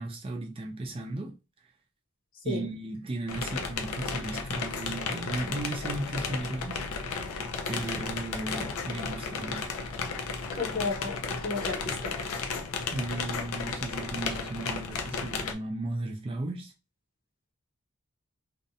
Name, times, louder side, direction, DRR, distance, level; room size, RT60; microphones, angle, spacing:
voice 1, 0.0-1.3 2.4-6.8 7.7-9.7 12.9-16.7, right 2 dB, 25° right, 0.3 m, -35 dB
sound 1, 3.3-15.5, left 4 dB, 80° left, 0.4 m, -34 dB
voice 2, 10.5-12.1, left 3 dB, 40° left, 0.7 m, -33 dB
2.5 x 2.1 x 2.6 m
head